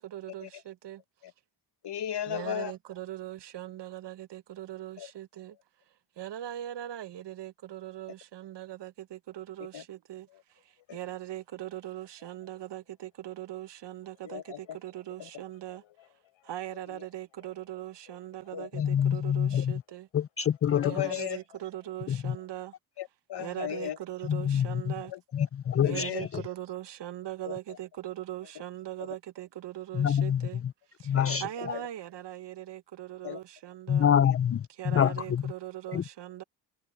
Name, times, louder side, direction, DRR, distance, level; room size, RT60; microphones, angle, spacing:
voice 1, 0.1-1.0 2.3-5.5 6.2-10.2 10.9-12.8 13.2-14.4 14.8-15.8 16.5-20.0 20.8-22.7 23.4-25.1 25.8-30.6 31.4-34.1 34.8-36.4, right 13 dB, 60° right, 1.0 m, -40 dB
voice 2, 1.8-2.7 5.0-5.1 9.7-9.8 10.3-10.4 10.9-11.0 14.2-14.8 15.2-15.3 16.9-17.1 18.5-18.9 20.7-21.4 23.0-24.0 25.1-25.5 25.8-26.2 27.4-27.6 29.0-29.2 31.1-31.4 31.7-31.9 33.2-33.4 34.2-34.4 35.9-36.0, left 11 dB, 60° left, 1.4 m, -37 dB
sound 1, 10.5-22.6, left 15 dB, 90° left, 5.3 m, -64 dB
voice 3, 18.7-19.8 20.1-20.9 22.1-22.4 24.3-24.9 25.3-26.3 29.9-30.5 31.0-31.7 33.9-35.5 35.9-36.0, left 8 dB, 30° left, 0.5 m, -26 dB
supercardioid pair, 65°, 46 cm